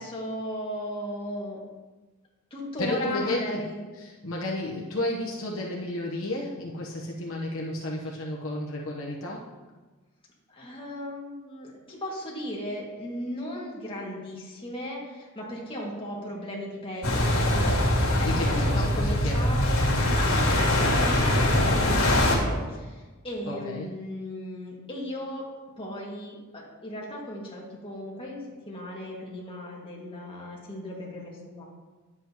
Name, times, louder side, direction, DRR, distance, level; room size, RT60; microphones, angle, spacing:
voice 1, 0.0-1.6 2.5-3.8 10.5-25.5 25.8-31.6, left 1 dB, 25° left, -4 dB, 2.1 m, -36 dB
voice 2, 2.8-3.7 4.0-9.5 18.1-19.7 23.5-23.9, left 1 dB, 70° left, -3 dB, 1.1 m, -32 dB
sound 1, 17.0-22.4, left 1 dB, 90° left, 2.4 m, -23 dB
10.5 x 8.0 x 3.0 m, 1.3 s
head